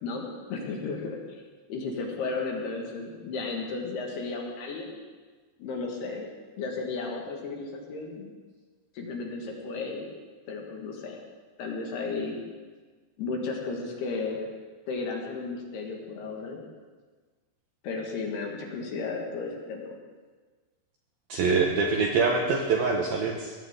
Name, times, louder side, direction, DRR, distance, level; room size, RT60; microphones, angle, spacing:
voice 1, 0.0-1.4 1.7-4.9 5.6-6.3 6.6-8.3 8.9-10.1 10.5-11.2 11.6-12.4 13.2-14.5 14.9-16.6 17.8-19.9, left 4 dB, 65° left, 0 dB, 3.4 m, -34 dB
voice 2, 21.3-23.6, right 4 dB, 75° right, 1 dB, 2.3 m, -24 dB
21.5 x 17.0 x 3.8 m, 1.4 s
omnidirectional pair, 5.6 m